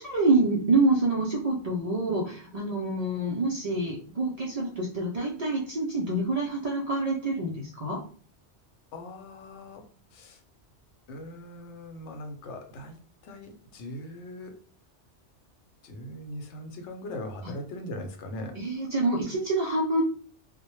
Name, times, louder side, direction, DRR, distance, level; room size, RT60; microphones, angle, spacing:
voice 1, 0.0-8.0 17.4-17.5 18.5-20.0, right 2 dB, 55° right, -3 dB, 0.4 m, -26 dB
voice 2, 8.9-9.9 10.1-10.4 11.1-14.5 15.8-18.6, left 1 dB, 90° left, 5 dB, 0.9 m, -40 dB
2.1 x 2.0 x 3.0 m, 0.44 s
omnidirectional pair, 1.1 m